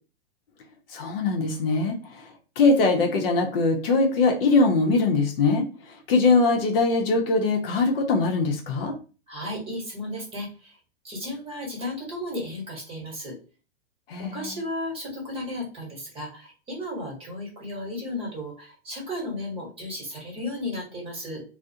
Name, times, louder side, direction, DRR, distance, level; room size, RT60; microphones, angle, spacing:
voice 1, 0.9-2.2 2.6-5.7 6.1-8.9 14.1-14.5, left 3 dB, 60° left, 3 dB, 0.7 m, -22 dB
voice 2, 9.3-10.8 11.0-13.4 14.2-21.4, left 1 dB, 15° right, -3 dB, 1.1 m, -34 dB
2.3 x 2.1 x 2.6 m, 0.35 s
hypercardioid pair, 125°, 32 cm